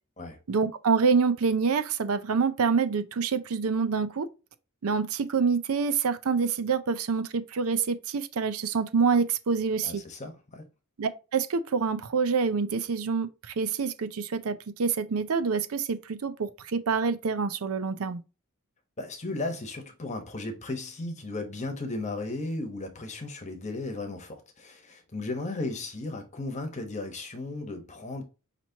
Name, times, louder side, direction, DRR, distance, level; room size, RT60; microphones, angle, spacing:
voice 1, 0.5-4.3 4.8-10.0 11.0-18.2, right 5 dB, 75° right, 0.5 m, -26 dB
voice 2, 9.8-10.7 19.0-28.2, left 2 dB, 30° left, 1.0 m, -35 dB
5.8 x 3.0 x 2.8 m
head